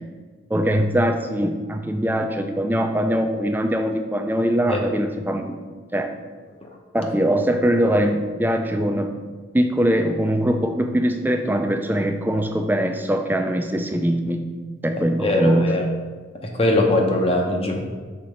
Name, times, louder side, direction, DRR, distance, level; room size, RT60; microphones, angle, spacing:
voice 1, 0.5-5.6 5.9-6.1 6.9-9.1 9.5-14.5 14.8-15.8, equal, 10° right, 5 dB, 0.4 m, -22 dB
voice 2, 15.2-15.8 16.4-17.8, left 2 dB, 30° left, 2 dB, 0.8 m, -21 dB
5.8 x 4.1 x 5.0 m, 1.4 s
head